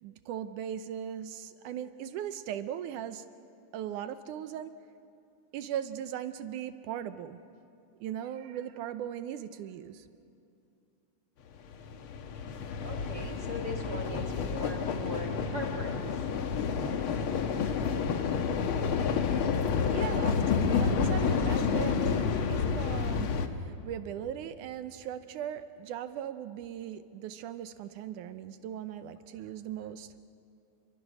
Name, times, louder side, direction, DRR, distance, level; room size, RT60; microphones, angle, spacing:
voice 1, 0.0-3.2 3.7-4.7 5.5-7.4 8.0-10.1 19.3-19.5 19.9-22.2 22.5-23.4 23.6-30.1, right 10 dB, 80° right, 11 dB, 2.2 m, -38 dB
sound 1, 11.6-23.5, left 6 dB, 60° left, 1.5 m, -29 dB
voice 2, 12.8-16.0, equal, 35° right, 1 dB, 2.0 m, -40 dB
29.0 x 24.0 x 6.3 m, 2.6 s
omnidirectional pair, 3.7 m